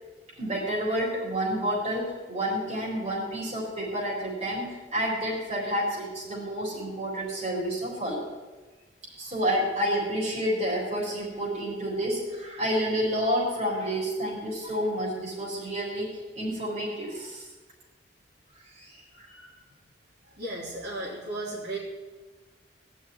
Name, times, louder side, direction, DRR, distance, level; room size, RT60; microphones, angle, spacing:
voice 1, 0.4-8.2 9.2-17.5 18.8-19.5, equal, 35° right, -4 dB, 4.3 m, -29 dB
voice 2, 20.4-21.8, right 2 dB, 60° right, -7 dB, 3.6 m, -34 dB
19.0 x 6.5 x 9.9 m, 1.3 s
head